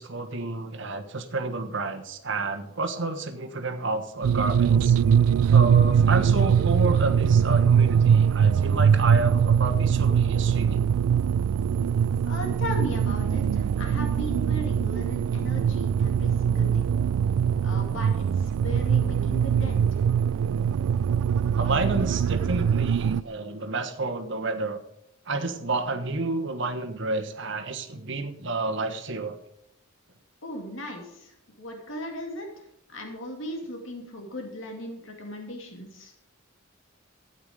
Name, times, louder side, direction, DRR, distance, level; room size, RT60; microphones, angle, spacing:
voice 1, 0.0-5.0 5.5-10.9 21.5-24.8 25.3-29.4, right 2 dB, 60° right, 7 dB, 1.3 m, -30 dB
sound 1, 4.2-23.2, right 7 dB, 85° right, 0.3 m, -22 dB
voice 2, 12.2-16.8 17.6-20.0 30.4-32.5 32.9-36.1, left 1 dB, 65° left, 2 dB, 2.4 m, -37 dB
13.0 x 9.1 x 4.9 m, 0.81 s
head